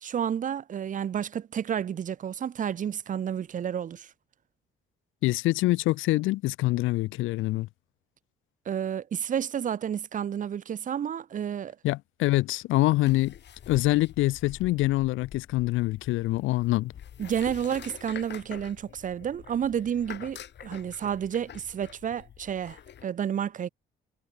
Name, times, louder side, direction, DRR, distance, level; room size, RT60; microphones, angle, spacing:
voice 1, 0.0-4.1 8.7-11.8 17.2-23.7, right 9 dB, 40° right, 0.5 m, -31 dB
voice 2, 5.2-7.7 11.8-13.4 13.7-16.9, left 18 dB, 90° left, 0.5 m, -25 dB
sound 1, 13.0-23.0, left 9 dB, 60° left, 3.1 m, -46 dB
cardioid pair, 90°, 20 cm